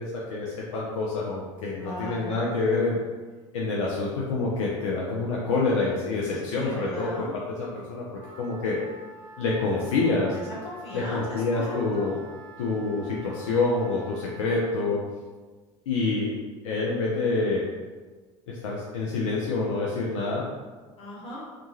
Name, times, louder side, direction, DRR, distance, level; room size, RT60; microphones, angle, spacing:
voice 1, 0.0-3.0 3.5-8.0 8.4-8.8 9.4-10.3 10.9-12.2 12.6-15.0 15.9-16.3 16.6-17.6 18.5-20.5, left 3 dB, 70° left, -4 dB, 0.5 m, -27 dB
voice 2, 1.8-2.4 6.3-7.4 9.9-12.2 21.0-21.4, left 1 dB, 35° left, -6 dB, 1.1 m, -38 dB
Wind instrument woodwind instrument, 8.2-14.5, right 3 dB, 60° right, 0.4 m, -47 dB
2.8 x 2.2 x 2.7 m, 1.3 s
figure-of-eight pair, 65°, 16 cm